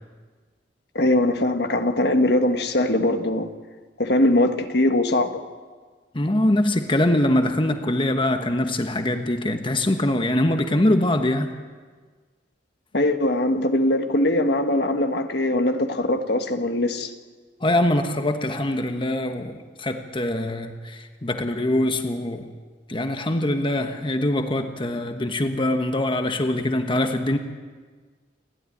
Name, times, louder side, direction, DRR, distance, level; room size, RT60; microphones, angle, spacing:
voice 1, 0.9-3.5 4.0-5.4 12.9-17.1, left 1 dB, 65° left, 1.5 m, -21 dB
voice 2, 6.1-11.5 17.6-22.5 22.9-27.4, left 1 dB, 30° left, 1.3 m, -23 dB
29.5 x 12.5 x 9.9 m
head